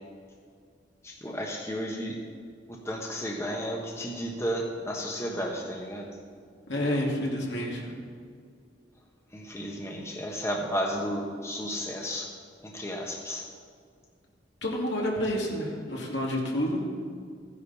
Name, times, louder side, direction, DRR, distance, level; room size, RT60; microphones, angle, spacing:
voice 1, 1.0-2.2 2.7-6.1 9.3-12.3 12.6-13.5, equal, 15° left, 0 dB, 1.2 m, -33 dB
voice 2, 6.7-7.8 14.6-16.8, left 1 dB, 70° left, -2 dB, 2.6 m, -29 dB
15.0 x 10.0 x 4.2 m, 2.1 s
head